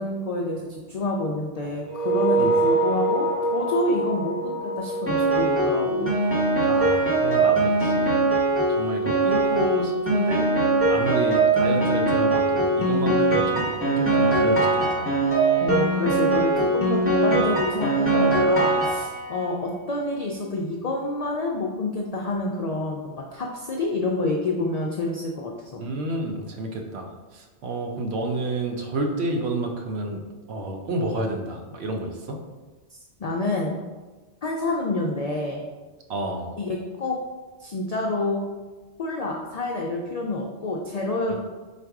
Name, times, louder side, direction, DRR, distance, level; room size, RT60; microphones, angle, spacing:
voice 1, 0.0-6.2 15.6-25.8 33.2-33.8 34.4-35.6 36.6-37.2 37.6-38.4 39.0-41.4, left 2 dB, 65° left, -1 dB, 0.3 m, -28 dB
sound 1, 1.9-6.7, right 2 dB, 50° right, 1.0 m, -25 dB
Piano, 5.1-19.4, right 2 dB, 15° left, 0.8 m, -21 dB
voice 2, 6.7-8.2 8.7-10.5 10.9-15.2 25.8-30.2 30.5-32.4 36.1-36.5 41.3-41.4, right 2 dB, 70° right, 3 dB, 0.9 m, -29 dB
4.0 x 2.5 x 4.5 m, 1.3 s
omnidirectional pair, 1.2 m